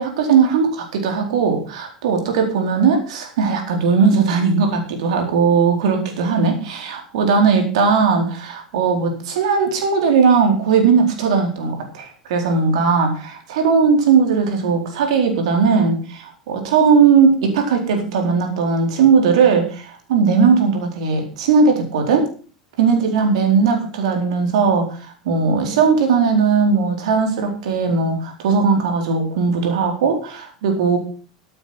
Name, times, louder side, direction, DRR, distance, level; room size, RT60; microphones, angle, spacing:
voice 1, 0.0-22.3 22.8-31.0, right 5 dB, 65° right, 3 dB, 4.2 m, -18 dB
14.0 x 8.9 x 5.9 m, 0.39 s
hypercardioid pair, 85°, 4 cm